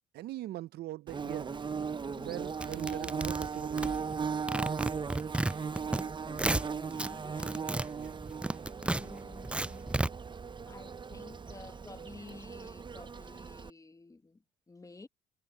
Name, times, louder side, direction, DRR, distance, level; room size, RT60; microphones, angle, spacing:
voice 1, 0.1-1.6 2.1-4.0 7.9-8.2, right 16 dB, 70° right, 0.7 m, -41 dB
Bird / Buzz, 1.1-13.7, right 5 dB, 25° right, 0.7 m, -38 dB
voice 2, 2.1-2.5 5.8-7.6 8.8-10.0 10.6-15.1, left 3 dB, 20° left, 1.3 m, -52 dB
sound 1, 2.6-4.2 4.5-6.0 6.3-7.1 7.4-10.1, right 2 dB, 5° right, 0.4 m, -32 dB
supercardioid pair, 70°, 17 cm